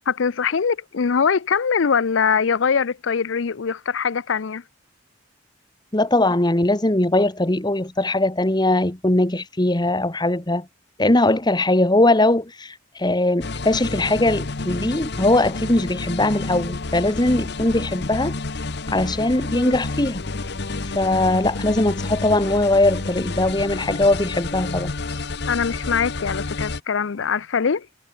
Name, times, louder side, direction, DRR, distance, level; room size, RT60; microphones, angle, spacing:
voice 1, 0.1-4.6 19.5-19.8 25.5-27.9, left 6 dB, 75° left, 0.6 m, -22 dB
voice 2, 5.9-10.7 11.0-18.3 18.9-20.2 20.9-24.9, left 2 dB, 20° left, 1.5 m, -20 dB
sound 1, 13.4-26.8, left 3 dB, 60° left, 1.1 m, -30 dB
head